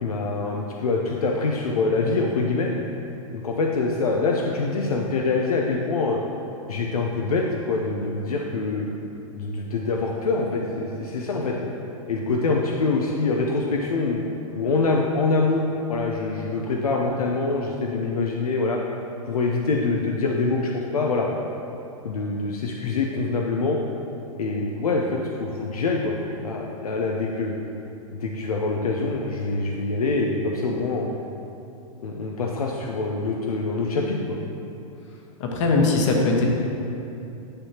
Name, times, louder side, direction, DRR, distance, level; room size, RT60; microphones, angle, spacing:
voice 1, 0.0-2.7 3.3-6.2 6.7-8.9 9.4-11.7 12.1-14.2 14.5-18.8 19.3-21.3 22.0-23.8 24.4-27.5 28.1-31.1 32.0-34.4, left 3 dB, 85° left, -1 dB, 0.6 m, -25 dB
voice 2, 35.4-36.5, left 3 dB, 55° left, 0 dB, 1.3 m, -20 dB
10.0 x 5.6 x 2.9 m, 2.8 s
hypercardioid pair, 115°, 18 cm